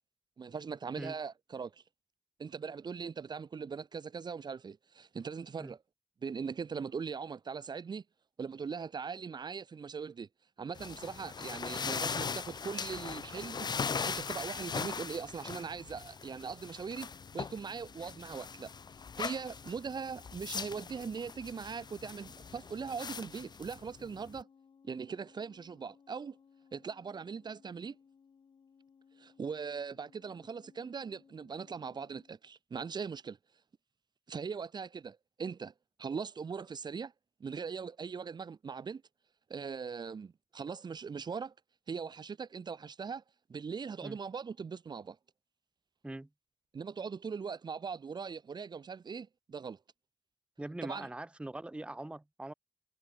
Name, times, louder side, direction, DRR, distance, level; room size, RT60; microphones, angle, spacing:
voice 1, 0.4-1.8 2.4-5.8 6.2-8.0 8.4-10.3 10.6-13.7 13.9-17.1 17.3-18.7 19.2-24.5 24.8-26.4 26.7-28.0 29.2-33.4 34.3-35.7 36.0-37.1 37.4-39.0 39.5-41.5 41.9-43.2 43.5-45.2 46.7-49.8 50.8-51.1, right 5 dB, 65° right, 0.9 m, -40 dB
sound 1, 10.8-24.4, left 5 dB, 60° left, 0.8 m, -40 dB
sound 2, 17.0-32.3, left 6 dB, 80° left, 3.1 m, -63 dB
voice 2, 50.6-52.5, right 1 dB, 15° right, 0.7 m, -42 dB
cardioid pair, 65°, 8 cm